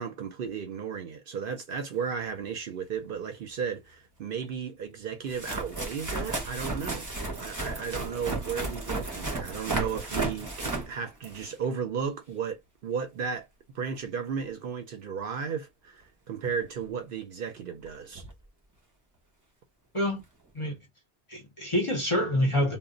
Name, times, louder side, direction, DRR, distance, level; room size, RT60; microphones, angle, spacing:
voice 1, 0.0-7.1 7.4-13.5 13.7-18.2, right 6 dB, 60° right, 0.7 m, -34 dB
sound 1, 3.1-3.2 4.4-4.5 5.3-11.6 16.8-16.9 17.9-18.0 18.1-18.3 20.2-20.3, right 2 dB, 20° right, 0.5 m, -34 dB
voice 2, 21.3-22.8, left 1 dB, 35° left, 0.6 m, -26 dB
2.1 x 2.1 x 3.7 m
omnidirectional pair, 1.1 m